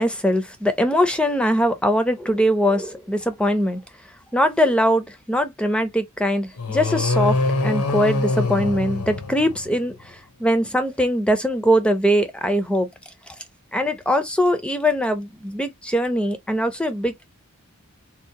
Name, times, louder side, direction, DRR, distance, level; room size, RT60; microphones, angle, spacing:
voice 1, 0.0-3.8 4.3-12.9 13.3-13.4 13.7-17.3, equal, 5° left, 0.5 m, -21 dB
sound 1, 6.6-9.9, left 3 dB, 90° left, 0.9 m, -24 dB
3.6 x 2.5 x 2.8 m
head